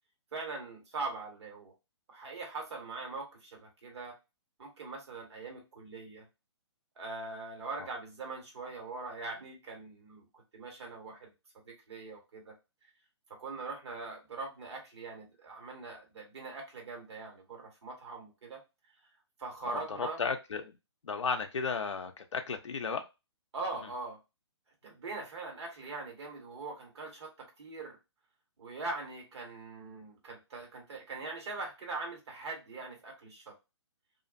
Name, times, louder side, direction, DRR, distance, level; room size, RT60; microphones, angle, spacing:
voice 1, 0.3-1.7 2.1-4.2 4.6-6.2 7.0-11.3 11.6-12.5 13.4-18.6 19.4-20.2 23.5-24.2 24.8-28.0 28.6-33.5, right 3 dB, 65° right, 1.3 m, -42 dB
voice 2, 19.7-20.7 21.0-23.0, left 5 dB, 90° left, 0.4 m, -34 dB
2.5 x 2.4 x 2.4 m
hypercardioid pair, 135°, 15 cm